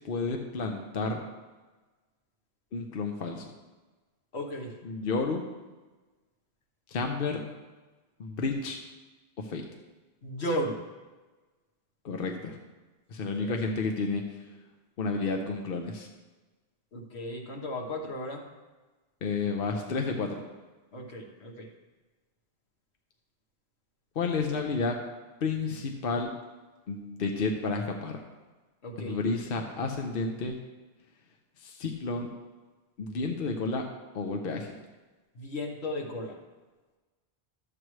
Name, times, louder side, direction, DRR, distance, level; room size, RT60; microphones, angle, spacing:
voice 1, 0.0-1.2 2.7-3.5 4.8-5.4 6.9-7.4 8.2-8.8 9.4-9.6 12.0-12.6 13.1-14.2 15.0-16.1 19.2-20.4 24.2-25.0 25.4-26.3 26.9-28.2 29.0-30.6 31.6-32.3 33.0-33.9 34.1-34.8, left 4 dB, 60° left, 3 dB, 0.9 m, -31 dB
voice 2, 4.3-4.7 10.2-10.8 13.4-13.5 16.9-18.4 20.9-21.7 28.8-29.2 35.3-36.4, equal, 80° left, 1 dB, 1.5 m, -35 dB
12.0 x 7.9 x 3.2 m, 1.2 s
omnidirectional pair, 1.1 m